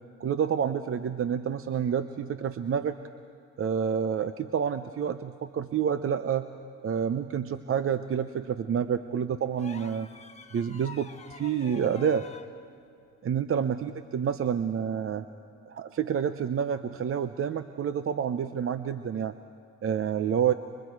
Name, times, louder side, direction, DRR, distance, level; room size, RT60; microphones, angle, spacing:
voice 1, 0.2-3.0 3.6-6.5 6.8-10.1 10.5-12.3 13.2-15.2 15.7-19.3 19.8-20.5, right 8 dB, 45° right, 10 dB, 0.7 m, -28 dB
sound 1, 9.6-12.5 14.2-14.4, left 5 dB, 20° left, 1.4 m, -46 dB
30.0 x 24.5 x 4.7 m, 2.4 s
cardioid pair, 90°, 30 cm